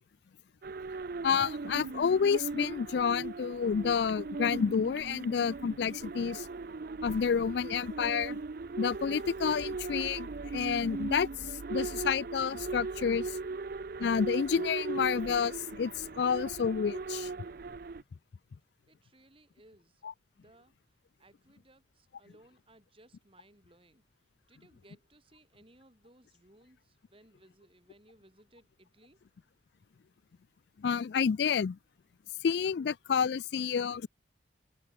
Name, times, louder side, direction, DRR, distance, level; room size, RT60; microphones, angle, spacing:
sound 1, 0.6-18.0, right 3 dB, 50° right, 0.5 m, -39 dB
voice 1, 1.2-6.5 7.0-8.4 8.8-13.4 14.0-17.3 30.8-31.8 32.4-34.1, left 6 dB, 60° left, 0.4 m, -29 dB
voice 2, 18.9-20.0 20.3-20.7 21.2-24.0 24.5-29.2, right 1 dB, 30° right, 4.7 m, -62 dB
head